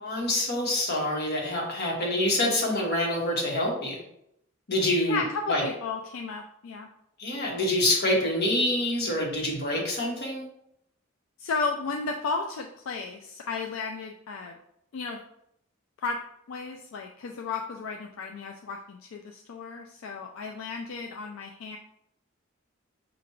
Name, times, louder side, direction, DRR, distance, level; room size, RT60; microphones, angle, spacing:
voice 1, 0.0-4.0 4.7-5.6 7.2-10.4, left 1 dB, 55° left, -1 dB, 1.3 m, -26 dB
voice 2, 5.1-6.9 11.4-14.6 14.9-15.2 16.0-16.2 16.5-21.8, left 4 dB, 80° left, 2 dB, 0.4 m, -34 dB
5.9 x 2.5 x 3.0 m, 0.76 s
head